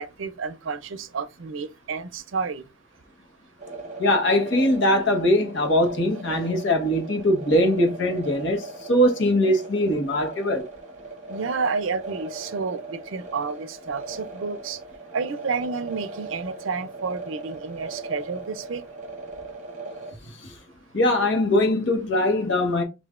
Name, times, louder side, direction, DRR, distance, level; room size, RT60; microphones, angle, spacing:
voice 1, 0.0-2.6 11.3-14.8 15.1-18.8, right 5 dB, 80° right, 0.5 m, -30 dB
sound 1, 3.6-20.1, right 3 dB, 40° right, 0.9 m, -39 dB
voice 2, 4.0-10.6 20.9-22.8, left 1 dB, 70° left, 1.1 m, -21 dB
5.5 x 2.5 x 2.4 m
head